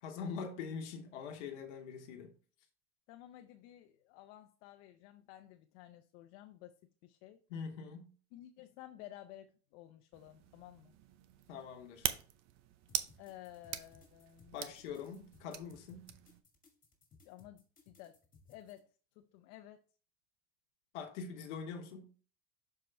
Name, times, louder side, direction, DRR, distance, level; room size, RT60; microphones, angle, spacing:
voice 1, 0.0-2.3 7.5-8.1 11.5-12.1 14.5-16.1 20.9-22.1, left 6 dB, 90° left, 1.2 m, -43 dB
voice 2, 3.1-6.8 7.0-7.4 8.3-10.9 13.2-14.6 17.2-18.2 18.5-18.9 19.2-19.8, left 13 dB, 65° left, 0.7 m, -54 dB
sound 1, 10.1-16.4, right 12 dB, 50° right, 0.7 m, -43 dB
sound 2, 12.9-18.8, left 4 dB, 25° left, 2.1 m, -64 dB
6.7 x 4.6 x 3.3 m
supercardioid pair, 115°, 34 cm